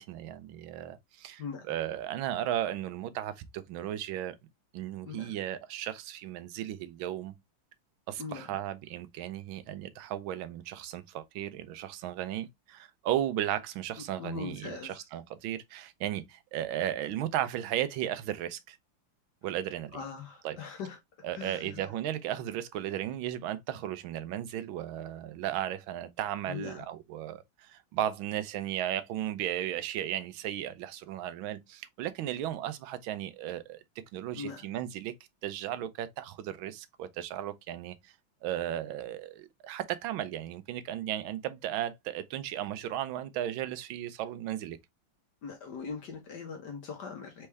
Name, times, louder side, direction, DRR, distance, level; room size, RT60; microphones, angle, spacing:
voice 1, 0.0-4.3 4.7-7.3 8.1-18.8 19.4-20.0 20.4-20.6 21.2-33.8 34.1-35.1 35.4-38.1 38.4-44.8, right 11 dB, 80° right, 1.4 m, -35 dB
voice 2, 5.0-5.4 8.2-8.6 14.2-15.1 19.9-21.0 21.3-21.9 26.5-26.8 34.4-34.7 45.4-47.5, left 5 dB, 60° left, 1.4 m, -41 dB
4.3 x 3.3 x 3.3 m
omnidirectional pair, 2.2 m